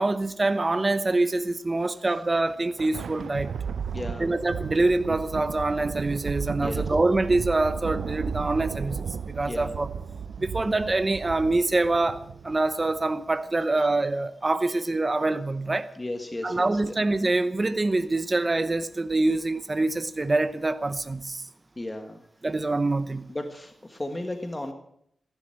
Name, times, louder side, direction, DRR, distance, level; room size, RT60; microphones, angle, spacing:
voice 1, 0.0-3.5 4.2-9.9 10.4-15.9 16.4-21.4 22.4-23.3, right 2 dB, 30° right, 0.9 m, -25 dB
Thunder, 2.5-13.1, right 6 dB, 85° right, 0.5 m, -34 dB
voice 2, 3.9-4.3 6.6-6.8 9.4-9.8 13.8-13.9 14.7-14.8 15.9-16.9 21.8-22.2 23.3-24.7, left 1 dB, 20° left, 1.5 m, -35 dB
14.5 x 12.0 x 7.8 m
wide cardioid pair, 100°, 0 cm